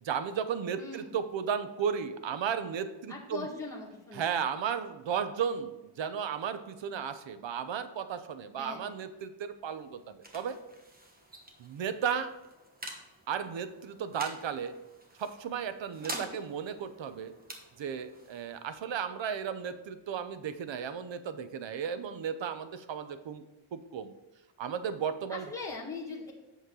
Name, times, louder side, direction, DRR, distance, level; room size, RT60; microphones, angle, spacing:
voice 1, 0.0-3.5 4.1-10.6 11.6-12.3 13.3-14.8 15.2-17.3 17.8-23.4 23.7-24.1 24.6-25.5, right 7 dB, 60° right, 11 dB, 0.7 m, -34 dB
voice 2, 0.8-1.1 3.1-4.3 8.6-8.9 16.0-16.4 25.3-26.3, left 3 dB, 5° left, -4 dB, 1.7 m, -41 dB
sound 1, 9.6-20.8, right 1 dB, 20° right, 1.1 m, -48 dB
8.2 x 6.5 x 3.8 m, 1.1 s
wide cardioid pair, 155°, 50 cm